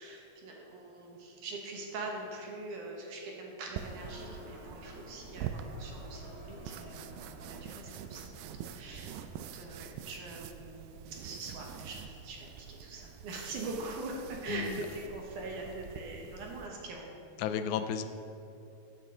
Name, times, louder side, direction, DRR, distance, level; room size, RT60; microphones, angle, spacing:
voice 1, 0.0-8.3 8.7-9.1 9.5-17.1 17.5-17.6, right 2 dB, 65° right, 0 dB, 2.5 m, -43 dB
sound 1, 3.6-9.4, equal, 40° right, 2.1 m, -53 dB
sound 2, 3.8-16.7, right 8 dB, 80° right, 2.2 m, -45 dB
voice 2, 14.5-14.8 17.4-18.0, left 8 dB, 85° left, 9 dB, 2.3 m, -33 dB
14.5 x 9.2 x 3.8 m, 2.7 s
omnidirectional pair, 4.2 m